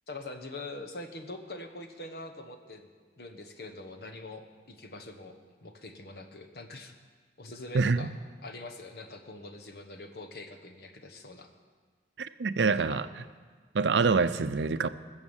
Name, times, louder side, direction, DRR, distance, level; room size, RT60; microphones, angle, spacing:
voice 1, 0.1-2.9 3.2-7.0 7.4-8.1 8.4-11.5 12.9-13.0, left 2 dB, 60° left, 6 dB, 1.3 m, -44 dB
voice 2, 7.7-8.1 12.2-13.1 13.7-14.9, right 4 dB, 80° right, 13 dB, 0.6 m, -26 dB
19.5 x 7.3 x 7.3 m, 1.5 s
head